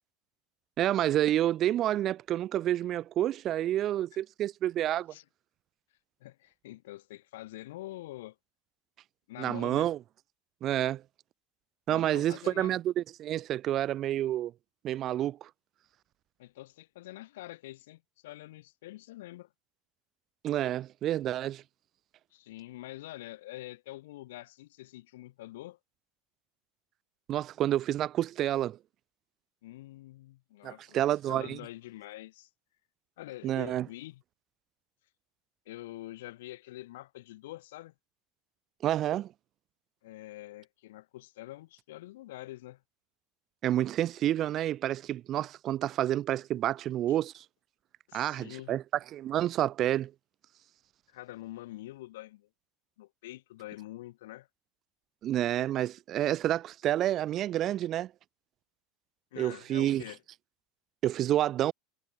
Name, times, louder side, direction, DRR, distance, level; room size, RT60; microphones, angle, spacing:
voice 1, 0.8-5.1 9.4-10.0 10.6-11.0 11.9-14.5 14.8-15.5 20.4-21.6 27.3-28.8 30.6-31.6 33.4-33.9 38.8-39.3 43.6-47.4 48.1-48.8 49.1-50.1 55.2-58.1 59.4-60.0 61.0-61.7, right 12 dB, 35° right, 1.2 m, -29 dB
voice 2, 6.2-8.4 9.3-9.9 11.9-12.8 16.4-19.5 22.3-25.8 29.6-32.5 33.2-34.2 35.7-37.9 40.0-42.8 47.1-47.2 48.1-48.8 51.1-52.5 53.0-54.5 59.3-60.2, left 16 dB, 85° left, 2.6 m, -45 dB
supercardioid pair, 140°, 0 cm